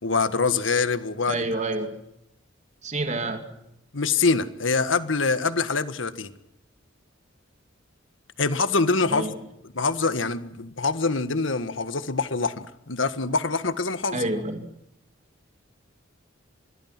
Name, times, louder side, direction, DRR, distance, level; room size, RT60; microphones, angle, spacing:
voice 1, 0.0-1.4 3.9-6.3 8.4-9.3 9.7-14.3, left 4 dB, 70° left, 12 dB, 1.7 m, -25 dB
voice 2, 1.3-2.0 2.8-3.5 9.1-9.4 14.1-14.7, right 2 dB, 35° right, 6 dB, 2.8 m, -28 dB
25.5 x 22.0 x 6.1 m, 0.80 s
head